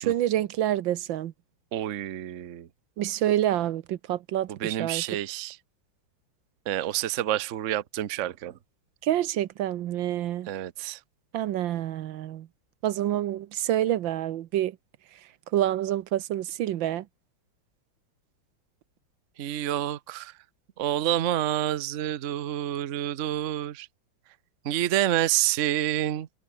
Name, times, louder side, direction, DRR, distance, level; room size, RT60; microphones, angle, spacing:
voice 1, 0.0-1.3 3.0-5.0 9.0-10.5 11.3-12.5 12.8-14.8 15.5-17.0, right 12 dB, 80° right, 1.6 m, -27 dB
voice 2, 1.7-2.7 4.5-5.6 6.7-8.6 10.5-11.0 19.4-20.3 20.8-23.9 24.6-26.3, right 12 dB, 55° right, 1.0 m, -28 dB
omnidirectional pair, 2.1 m